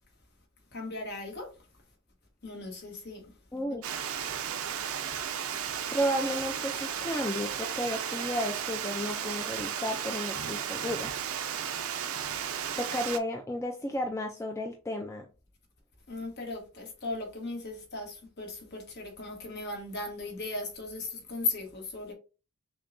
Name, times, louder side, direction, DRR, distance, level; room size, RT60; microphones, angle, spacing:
voice 1, 0.7-1.5 2.4-3.2 3.7-3.8 10.4-10.6 16.1-22.1, left 3 dB, 50° left, 1.1 m, -37 dB
voice 2, 3.5-3.8 5.9-11.1 12.8-15.3, equal, 10° left, 0.4 m, -33 dB
Water, 3.8-13.2, right 8 dB, 75° right, 0.5 m, -34 dB
6.1 x 2.2 x 2.6 m
head